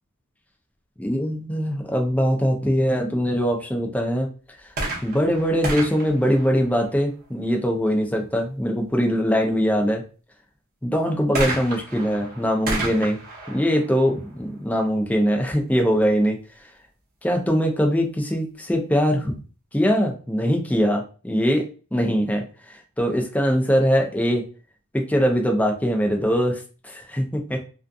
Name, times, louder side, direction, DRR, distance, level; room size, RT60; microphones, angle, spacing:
voice 1, 1.0-4.3 5.0-10.0 10.8-13.2 13.5-16.4 17.2-19.4 19.7-24.4 24.9-27.6, equal, 5° left, 2 dB, 0.5 m, -22 dB
sound 1, 4.7-7.3 11.3-15.0 15.8-15.9, right 2 dB, 45° right, 0.8 m, -32 dB
2.4 x 2.3 x 2.5 m, 0.36 s
head